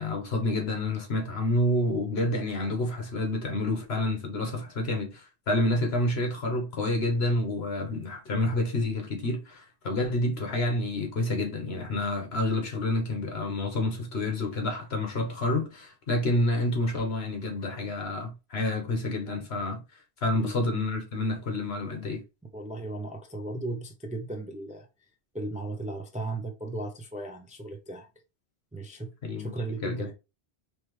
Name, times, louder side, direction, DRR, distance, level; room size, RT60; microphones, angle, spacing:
voice 1, 0.0-19.8 20.2-22.2 29.2-29.5 29.8-30.1, left 1 dB, 65° left, 1.5 m, -28 dB
voice 2, 22.5-24.9 25.3-28.1 28.7-29.1 29.4-30.1, right 2 dB, 10° right, 0.4 m, -36 dB
4.3 x 3.2 x 3.1 m
omnidirectional pair, 1.1 m